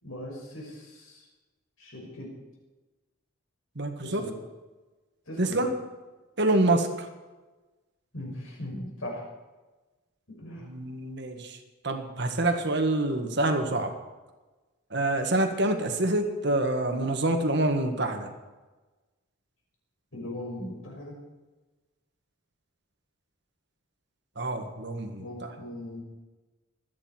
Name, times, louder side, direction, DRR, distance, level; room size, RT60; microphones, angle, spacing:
voice 1, 0.0-1.2 1.8-2.3 4.0-4.3 5.3-5.6 8.1-9.2 10.3-10.7 20.1-21.2 25.2-26.0, left 1 dB, 75° left, -1 dB, 5.7 m, -39 dB
voice 2, 3.8-4.3 5.4-5.7 6.4-7.1 10.7-11.6 11.8-13.9 14.9-18.3 24.4-25.5, right 2 dB, 55° right, 5 dB, 1.7 m, -26 dB
24.5 x 9.7 x 4.5 m, 1.2 s
head